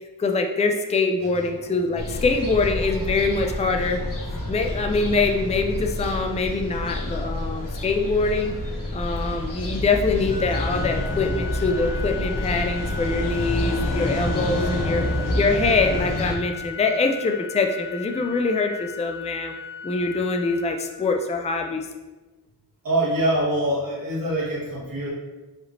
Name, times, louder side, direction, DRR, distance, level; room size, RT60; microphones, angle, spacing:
voice 1, 0.2-4.0 4.5-8.6 8.9-15.0 15.4-19.5 19.8-21.9, left 3 dB, 20° left, 4 dB, 0.3 m, -24 dB
sound 1, 1.2-10.9, equal, 35° right, 1.4 m, -42 dB
sound 2, 2.0-16.4, left 1 dB, 55° left, 0.9 m, -28 dB
Organ, 10.3-21.3, left 7 dB, 85° left, 1.0 m, -37 dB
voice 2, 22.8-25.1, right 1 dB, 60° right, -5 dB, 1.1 m, -24 dB
5.0 x 2.8 x 2.9 m, 1.2 s
wide cardioid pair, 80°, 38 cm